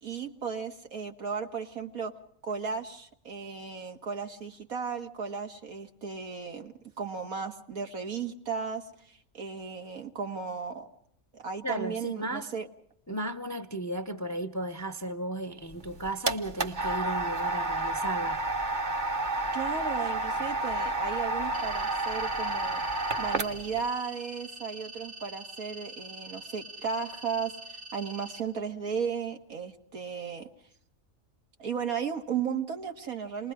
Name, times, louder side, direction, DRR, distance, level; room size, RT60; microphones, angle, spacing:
voice 1, 0.0-2.1 2.4-10.9 11.3-12.7 19.5-22.8 23.2-30.5 31.6-33.5, right 6 dB, 85° right, 2.2 m, -35 dB
voice 2, 11.6-12.5 13.1-18.4, right 1 dB, 15° left, 0.6 m, -35 dB
sound 1, 15.7-23.8, right 2 dB, 40° right, 1.0 m, -30 dB
sound 2, 21.5-28.4, right 2 dB, 60° right, 2.5 m, -45 dB
28.5 x 20.5 x 4.8 m
omnidirectional pair, 1.5 m